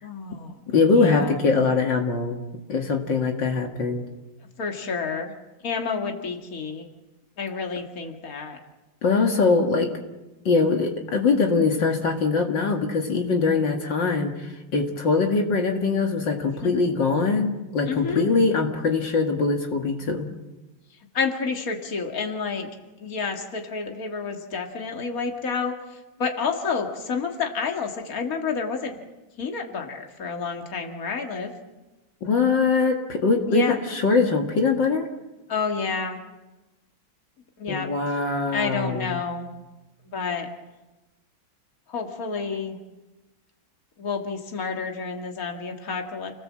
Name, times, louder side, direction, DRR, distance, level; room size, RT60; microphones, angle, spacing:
voice 1, 0.0-0.6 0.9-1.3 4.6-5.3 5.6-6.9 7.4-8.6 16.6-16.7 17.1-17.2 17.9-18.3 21.1-22.7 23.0-29.0 29.4-31.5 33.5-33.8 35.5-36.2 37.6-37.9 38.5-39.5 40.1-40.5 41.9-42.8 44.0-46.3, left 5 dB, 45° left, 2 dB, 2.6 m, -29 dB
voice 2, 0.7-2.4 2.7-4.0 9.0-9.9 10.5-20.3 32.2-35.1 37.7-39.2, left 4 dB, 65° left, 2 dB, 2.6 m, -22 dB
29.5 x 18.5 x 7.6 m, 1.1 s
omnidirectional pair, 2.1 m